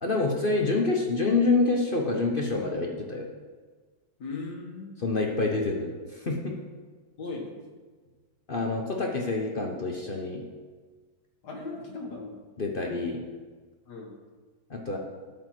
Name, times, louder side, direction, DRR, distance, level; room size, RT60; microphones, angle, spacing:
voice 1, 0.0-3.3 5.0-6.6 8.5-10.4 12.6-13.2 14.7-15.0, left 3 dB, 40° left, 1 dB, 0.8 m, -27 dB
voice 2, 4.2-4.9 7.2-7.5 11.4-12.4 13.9-14.1, left 3 dB, 60° left, 1 dB, 2.0 m, -37 dB
12.5 x 5.3 x 6.0 m, 1.4 s
omnidirectional pair, 2.1 m